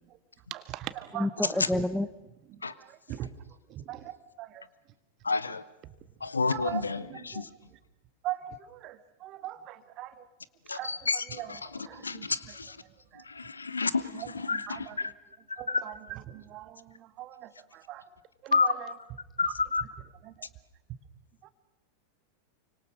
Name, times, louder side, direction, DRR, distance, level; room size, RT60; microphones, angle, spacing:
voice 1, 0.5-1.8 2.5-3.3 3.7-4.6 6.5-6.8 7.1-7.5 8.2-10.3 10.7-12.3 13.1-13.2 14.1-15.0 15.6-18.0 18.4-18.9 19.5-19.6 20.2-20.5 21.4-21.5, right 14 dB, 35° right, 12 dB, 1.6 m, -41 dB
voice 2, 1.2-2.1, left 1 dB, 5° left, 11 dB, 0.8 m, -28 dB
voice 3, 5.2-5.6 6.2-7.5 10.7-12.8 13.3-15.1 15.5-15.9 18.5-18.7 19.4-19.8, left 4 dB, 75° left, 17 dB, 1.0 m, -30 dB
29.0 x 25.0 x 6.3 m, 1.0 s
figure-of-eight pair, 90°, 0 cm